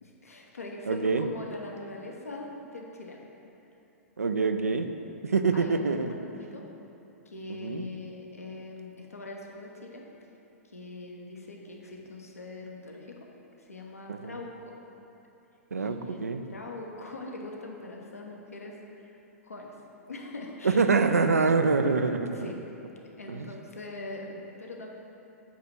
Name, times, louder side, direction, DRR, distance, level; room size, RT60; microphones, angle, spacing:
voice 1, 0.0-3.2 5.5-6.7 7.3-10.0 10.7-13.2 13.6-14.7 15.8-19.1 19.4-19.7 20.1-20.8 22.3-22.6 23.2-24.9, left 2 dB, 80° left, 0 dB, 0.9 m, -42 dB
voice 2, 0.9-1.3 4.2-4.9 5.2-6.1 7.6-7.8 14.1-14.4 15.7-16.4 20.6-22.5 23.3-23.5, right 4 dB, 80° right, 7 dB, 0.4 m, -25 dB
8.2 x 2.9 x 6.0 m, 2.9 s
figure-of-eight pair, 105°, 8 cm